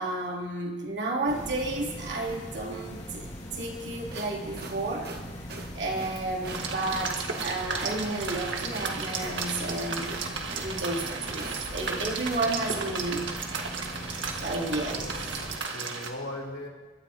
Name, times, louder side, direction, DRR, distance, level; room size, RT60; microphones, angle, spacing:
voice 1, 0.0-5.5 5.7-10.2 10.6-13.3 14.4-15.1, right 2 dB, 75° right, -2 dB, 2.9 m, -32 dB
sound 1, 1.3-15.6, equal, 35° left, 2.3 m, -41 dB
sound 2, 3.9-12.9, right 3 dB, 55° right, 1.3 m, -43 dB
voice 2, 5.9-6.3 14.4-14.6 14.9-15.1 15.4-16.7, left 1 dB, 85° left, -3 dB, 3.2 m, -40 dB
sound 3, 6.5-16.1, right 4 dB, 90° right, 1.7 m, -34 dB
29.0 x 13.0 x 2.9 m, 1.3 s
head